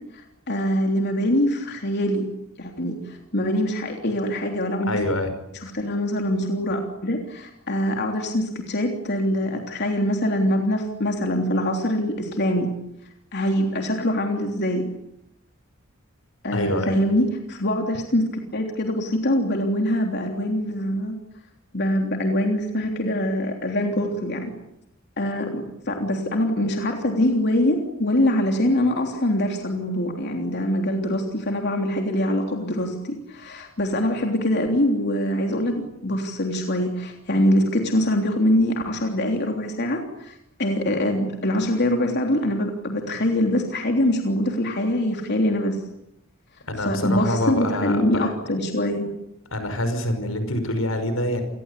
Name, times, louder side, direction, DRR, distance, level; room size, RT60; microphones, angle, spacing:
voice 1, 0.1-2.2 2.6-5.0 5.6-12.7 13.3-14.8 16.4-21.2 21.7-24.5 25.2-45.8 46.8-49.1, left 1 dB, 55° left, 2 dB, 3.3 m, -24 dB
voice 2, 4.9-5.3 16.5-17.0 46.7-48.3 49.5-51.4, left 1 dB, 85° left, 9 dB, 5.6 m, -25 dB
28.5 x 20.5 x 8.4 m, 0.83 s
head